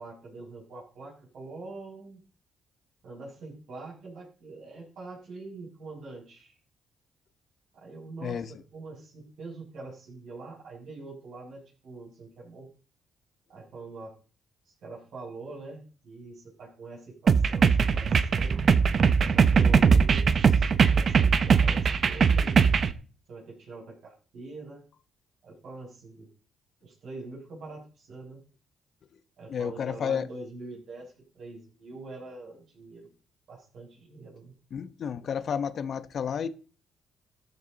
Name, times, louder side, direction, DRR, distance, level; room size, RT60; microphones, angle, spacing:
voice 1, 0.0-2.2 3.0-6.6 7.7-12.7 13.5-14.2 14.6-18.6 19.2-22.8 23.3-24.9 25.4-26.3 26.8-28.5 29.4-33.1 33.5-34.5, right 3 dB, 70° right, 6.3 m, -44 dB
sound 1, 17.3-22.9, right 6 dB, 50° right, 0.9 m, -21 dB
voice 2, 29.5-30.3 34.7-36.5, left 7 dB, 55° left, 1.0 m, -31 dB
13.5 x 9.4 x 4.0 m
cardioid pair, 90°, 0 cm